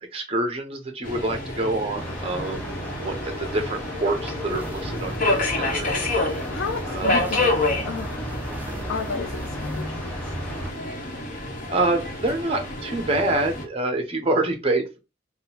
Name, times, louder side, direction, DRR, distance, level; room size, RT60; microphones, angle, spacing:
voice 1, 0.1-6.0 6.9-7.3 8.5-8.8 11.7-15.0, right 2 dB, 30° right, 0.8 m, -26 dB
Subway metro underground, 1.0-13.6, left 2 dB, 45° left, 1.1 m, -29 dB
sound 1, 2.0-10.7, equal, 5° left, 0.7 m, -36 dB
sound 2, 4.5-9.8, right 1 dB, 10° right, 0.3 m, -38 dB
voice 2, 6.5-7.5 7.8-8.4 8.9-10.3, left 5 dB, 90° left, 0.5 m, -33 dB
3.8 x 2.3 x 4.1 m
head